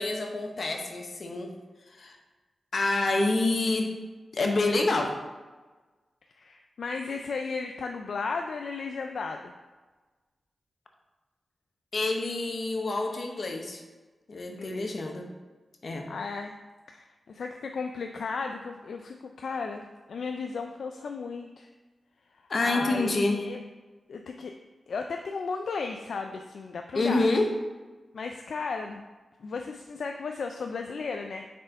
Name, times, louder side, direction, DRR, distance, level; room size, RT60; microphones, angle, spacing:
voice 1, 0.0-1.5 1.9-2.2 2.7-3.9 4.3-5.1 11.9-13.8 14.3-15.3 15.8-16.1 22.5-23.4 26.9-27.5, left 2 dB, 60° left, 3 dB, 0.9 m, -27 dB
voice 2, 6.4-9.5 14.5-14.8 16.1-16.5 16.9-21.7 22.6-23.6 24.1-24.5 24.9-27.3 28.1-29.0 29.4-31.5, left 4 dB, 75° left, 4 dB, 0.3 m, -35 dB
4.4 x 4.2 x 5.2 m, 1.3 s
cardioid pair, 55°, 0 cm